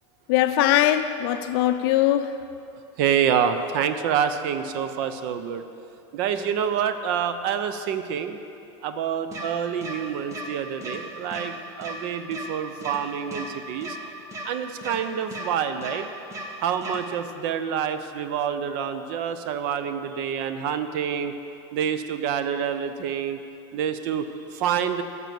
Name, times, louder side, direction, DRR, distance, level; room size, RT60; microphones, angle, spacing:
voice 1, 0.3-2.4, left 12 dB, 55° left, 9 dB, 0.7 m, -21 dB
voice 2, 3.0-5.7 6.1-8.4 8.8-14.0 14.4-16.1 16.6-21.3 21.7-23.4 23.7-25.0, right 8 dB, 50° right, 10 dB, 0.7 m, -27 dB
sound 1, 9.3-9.4 9.8-9.9 10.3-10.4 10.8-11.0 11.3-11.4 11.8-11.9 12.3-12.4 12.8-13.0 13.3-13.4 13.8-13.9 14.3-14.4 14.8-15.0 15.3-15.4 15.8-15.9 16.3-16.4 16.8-17.0, right 1 dB, 20° right, 1.3 m, -35 dB
12.5 x 6.2 x 7.6 m, 2.6 s
supercardioid pair, 160°, 15 cm